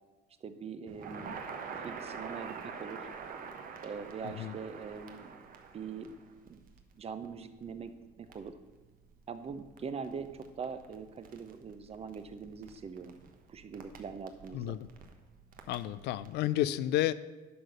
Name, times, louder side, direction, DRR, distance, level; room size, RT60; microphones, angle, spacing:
voice 1, 0.4-1.4 1.8-3.1 3.8-5.3 5.7-6.2 6.5-6.6 7.0-7.9 8.2-8.6 9.3-13.2 13.5-14.8, right 5 dB, 35° right, 11 dB, 0.8 m, -42 dB
Crackle, 0.9-16.3, right 5 dB, 55° right, 1.1 m, -47 dB
voice 2, 4.2-4.5 14.5-14.9 15.7-17.1, left 14 dB, 80° left, 15 dB, 0.4 m, -31 dB
11.0 x 4.0 x 6.6 m, 1.2 s
cardioid pair, 110°, 17 cm